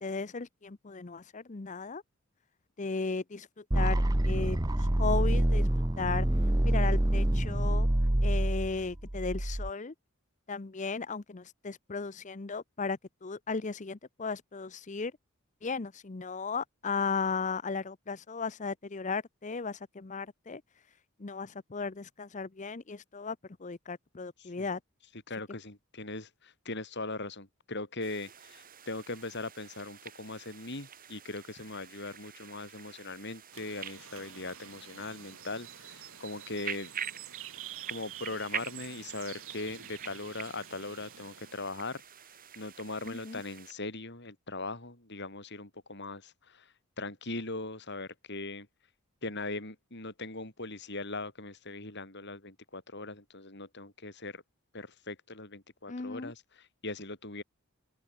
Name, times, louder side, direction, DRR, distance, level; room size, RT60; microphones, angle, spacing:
voice 1, 0.0-2.0 2.8-5.7 6.0-7.9 8.2-9.9 10.5-15.1 15.6-24.8 43.1-43.4 55.9-56.3, left 4 dB, 35° left, 0.7 m, -36 dB
sound 1, 3.7-9.7, right 1 dB, 20° right, 0.9 m, -26 dB
voice 2, 25.3-36.9 37.9-42.0 42.6-48.7 49.2-54.4 54.7-57.4, left 2 dB, 55° left, 7.4 m, -40 dB
sound 2, 28.0-43.7, right 8 dB, 40° right, 7.7 m, -46 dB
sound 3, 33.5-41.7, right 11 dB, 70° right, 2.7 m, -48 dB
open air
head